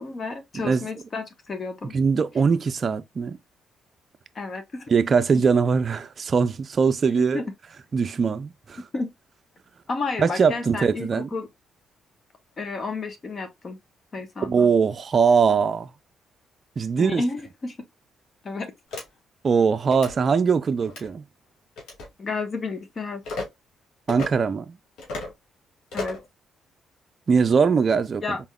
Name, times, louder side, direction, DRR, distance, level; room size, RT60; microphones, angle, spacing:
voice 1, 0.0-1.9 4.3-4.9 7.2-7.4 8.9-9.1 9.9-11.5 12.6-13.8 14.1-14.7 17.0-17.8 18.4-18.7 22.2-23.2 25.9-26.2 28.2-28.4, left 3 dB, 40° left, 1.0 m, -31 dB
voice 2, 0.5-0.9 1.9-3.4 4.9-7.4 7.9-8.8 10.2-11.3 14.4-15.9 16.8-17.2 19.4-21.2 24.1-24.8 27.3-28.4, right 5 dB, 45° right, 0.4 m, -21 dB
sound 1, 18.9-19.0 19.8-20.1 20.8-21.1 21.8-22.1 23.2-23.5 24.1-24.3 25.0-25.3 25.9-26.3, left 2 dB, 80° left, 1.9 m, -33 dB
4.2 x 3.6 x 2.2 m
cardioid pair, 90°, 0 cm